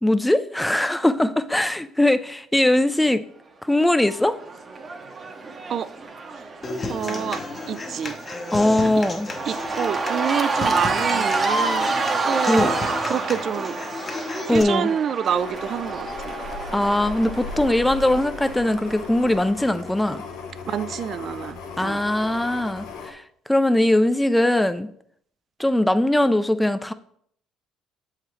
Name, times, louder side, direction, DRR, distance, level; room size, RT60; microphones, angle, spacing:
voice 1, 0.0-3.2 3.6-4.4 8.5-9.3 12.5-12.7 14.5-14.9 16.7-20.2 21.8-23.2 23.5-24.9 25.6-26.9, left 1 dB, 5° left, 0.5 m, -20 dB
Cheering / Crowd, 3.8-19.1, right 3 dB, 35° right, 0.8 m, -29 dB
Human voice / Acoustic guitar, 6.6-14.6, left 3 dB, 35° left, 0.9 m, -33 dB
voice 2, 6.9-7.4 7.7-8.1 8.9-9.1 9.5-11.9 12.3-12.8 13.1-13.8 14.5-16.3 20.7-22.0, right 8 dB, 55° right, 0.3 m, -27 dB
sound 1, 15.3-23.1, left 4 dB, 80° left, 1.0 m, -36 dB
7.3 x 4.8 x 3.1 m
hypercardioid pair, 65°, 0 cm